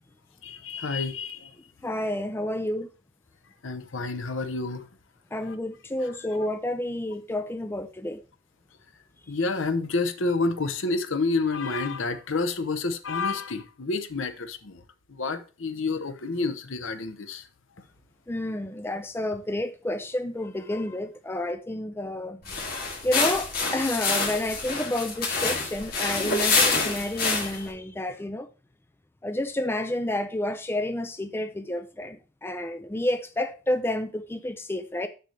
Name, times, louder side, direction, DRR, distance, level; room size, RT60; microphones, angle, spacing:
voice 1, 0.4-1.5 3.6-4.8 5.5-5.6 9.3-14.8 15.1-17.4, left 3 dB, 70° left, 0.8 m, -29 dB
voice 2, 1.8-2.9 5.3-8.2 18.3-28.5 29.2-35.1, left 1 dB, 10° left, 0.4 m, -30 dB
sound 1, 22.4-27.7, left 3 dB, 45° left, 2.4 m, -26 dB
7.8 x 6.6 x 3.3 m
head